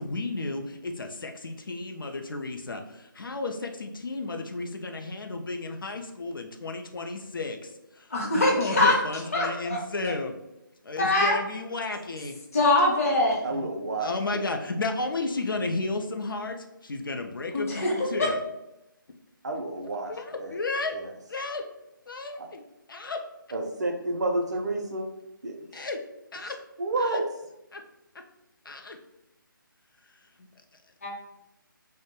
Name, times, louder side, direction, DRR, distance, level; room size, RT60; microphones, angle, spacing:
voice 1, 0.0-10.3 10.8-12.4 13.5-13.7 14.0-16.6 16.8-18.4 20.1-21.0 21.3-21.7 22.1-22.6 22.9-23.2 25.7-26.0 26.3-26.6 27.0-27.2 27.7-27.8 28.7-29.0, left 3 dB, 70° left, 4 dB, 0.4 m, -33 dB
voice 2, 8.1-9.0 9.3-9.8 11.0-11.3 12.5-13.4 17.5-18.0 31.0-31.1, left 2 dB, 40° left, -2 dB, 0.7 m, -23 dB
voice 3, 13.4-14.4 19.4-20.1 20.4-20.6 20.9-21.1 22.4-22.5 23.5-25.1 25.4-25.9 26.8-27.2, right 2 dB, 50° right, 2 dB, 0.5 m, -30 dB
2.2 x 2.0 x 2.9 m, 0.88 s
figure-of-eight pair, 150°, 12 cm